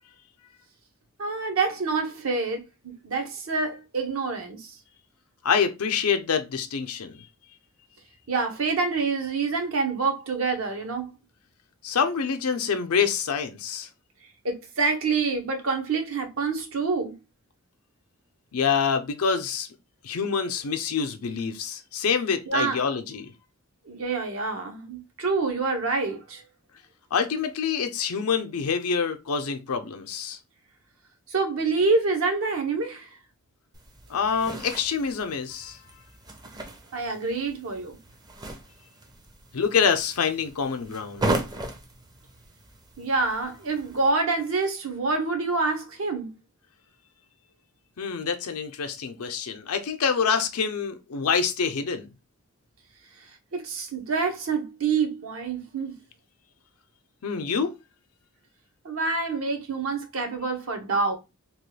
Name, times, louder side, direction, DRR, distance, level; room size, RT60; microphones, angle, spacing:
voice 1, 1.2-4.8 8.3-11.1 14.4-17.2 22.5-22.9 23.9-26.4 31.3-33.1 36.9-38.0 43.0-46.3 53.5-56.0 58.8-61.2, right 4 dB, 70° right, 0.8 m, -27 dB
voice 2, 5.4-7.2 11.8-13.9 18.5-19.7 20.0-23.3 27.1-30.4 34.1-35.8 39.5-41.3 48.0-52.1 57.2-57.7, left 6 dB, 90° left, 0.6 m, -26 dB
sound 1, 33.7-44.1, right 2 dB, 20° right, 0.5 m, -36 dB
3.0 x 2.3 x 3.2 m
head